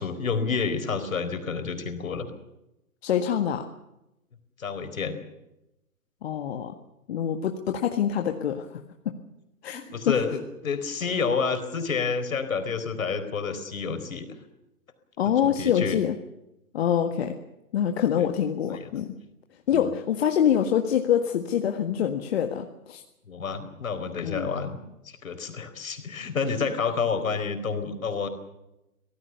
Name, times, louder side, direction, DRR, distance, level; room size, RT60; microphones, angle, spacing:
voice 1, 0.0-2.3 4.6-5.2 9.7-14.3 15.2-16.0 18.2-18.3 18.7-18.9 19.7-19.8 23.3-24.8 25.0-28.3, left 5 dB, 60° left, 8 dB, 4.5 m, -29 dB
voice 2, 3.0-3.6 6.2-6.7 7.1-8.8 9.0-9.1 9.6-10.1 15.2-16.2 16.7-17.4 17.7-19.2 19.7-23.0 24.2-24.5, left 9 dB, 45° left, 5 dB, 1.8 m, -25 dB
25.0 x 18.0 x 6.8 m, 0.89 s
figure-of-eight pair, 125°, 45 cm